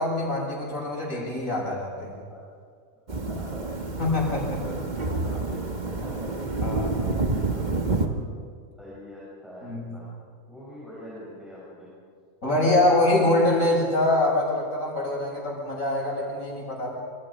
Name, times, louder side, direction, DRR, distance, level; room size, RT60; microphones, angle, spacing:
voice 1, 0.0-2.2 4.0-4.4 6.6-7.0 9.6-9.8 12.4-16.9, left 1 dB, 75° left, -2 dB, 7.5 m, -24 dB
voice 2, 3.1-6.4 6.8-8.2 8.8-10.0 10.5-11.9, equal, ahead, -8 dB, 7.8 m, -43 dB
sound 1, 3.1-8.1, right 3 dB, 35° right, 1.6 m, -28 dB
28.0 x 27.5 x 5.3 m, 2.1 s
omnidirectional pair, 1.4 m